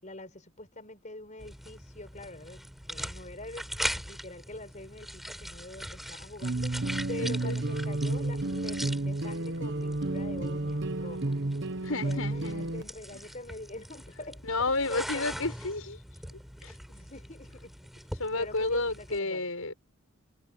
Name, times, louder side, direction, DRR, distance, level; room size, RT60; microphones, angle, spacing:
voice 1, 0.0-2.6 2.9-11.4 11.8-15.5 16.9-17.7 18.3-19.5, left 2 dB, 35° left, 5.6 m, -44 dB
sound 1, 1.4-19.2, equal, ahead, 5.5 m, -41 dB
sound 2, 6.4-12.8, right 2 dB, 55° right, 1.1 m, -31 dB
voice 2, 7.2-7.6 11.8-13.2 14.4-16.0 16.6-16.7 18.2-19.8, left 3 dB, 75° left, 6.8 m, -32 dB
head